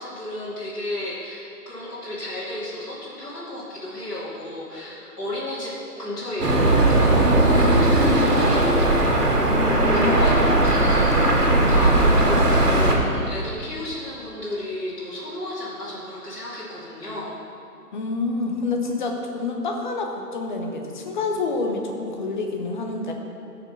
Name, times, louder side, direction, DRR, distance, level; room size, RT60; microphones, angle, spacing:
voice 1, 0.0-9.1 9.8-11.4 11.7-17.3, left 1 dB, 75° left, -8 dB, 2.8 m, -33 dB
sound 1, 6.4-13.0, right 1 dB, 75° right, 2.0 m, -18 dB
voice 2, 9.4-10.3 17.9-23.1, left 3 dB, 30° left, 2 dB, 1.0 m, -27 dB
12.0 x 6.0 x 6.0 m, 2.6 s
figure-of-eight pair, 135°, 47 cm